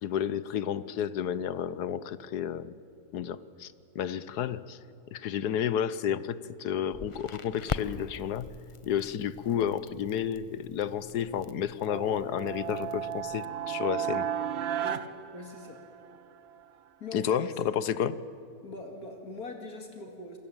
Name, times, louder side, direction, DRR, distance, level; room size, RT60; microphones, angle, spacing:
voice 1, 0.0-2.7 3.1-4.8 5.1-8.5 8.8-14.3 17.1-18.2, left 9 dB, 85° left, 15 dB, 1.4 m, -31 dB
Crackle, 6.9-13.4, left 4 dB, 50° left, 0.3 m, -42 dB
sound 1, 11.8-16.2, right 9 dB, 50° right, 0.9 m, -34 dB
voice 2, 15.3-15.8 17.0-17.4 18.6-20.4, left 2 dB, 70° left, 3 dB, 2.8 m, -42 dB
28.0 x 21.5 x 8.9 m, 2.5 s
omnidirectional pair, 1.7 m